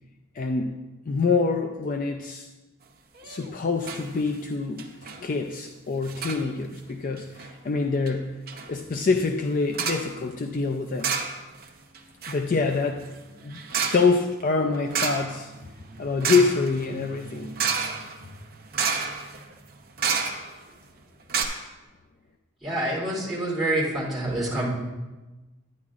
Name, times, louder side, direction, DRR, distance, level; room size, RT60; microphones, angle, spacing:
voice 1, 0.3-0.8 1.1-2.5 3.2-4.9 5.2-8.4 8.7-11.1 12.3-13.1 13.4-13.6 13.9-15.5 16.0-17.5, left 4 dB, 40° left, 4 dB, 0.4 m, -25 dB
sound 1, 3.2-3.5 3.8-4.1 4.3-4.4 4.8-5.2 6.0-6.4 7.2-7.5 8.1-8.2 8.5-8.7 9.7-10.1 11.0-11.7 11.9-20.7 21.0-21.1 21.3-21.4, right 6 dB, 45° right, 0.8 m, -30 dB
voice 2, 22.6-24.7, right 1 dB, ahead, -9 dB, 2.5 m, -27 dB
10.5 x 9.4 x 2.4 m, 1.1 s
head